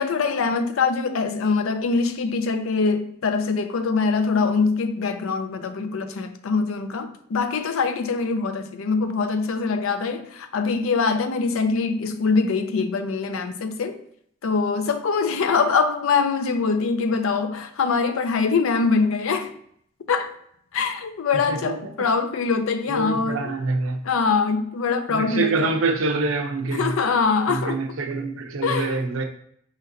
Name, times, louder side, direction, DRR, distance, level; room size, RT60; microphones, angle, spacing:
voice 1, 0.0-14.0 14.4-19.5 20.1-20.3 20.7-23.6 24.0-25.8 26.7-27.8 28.6-29.0, left 4 dB, 80° left, 0.5 m, -23 dB
voice 2, 22.9-24.0 25.1-26.9 27.5-29.3, right 3 dB, 70° right, 0.6 m, -25 dB
5.1 x 4.0 x 2.6 m
head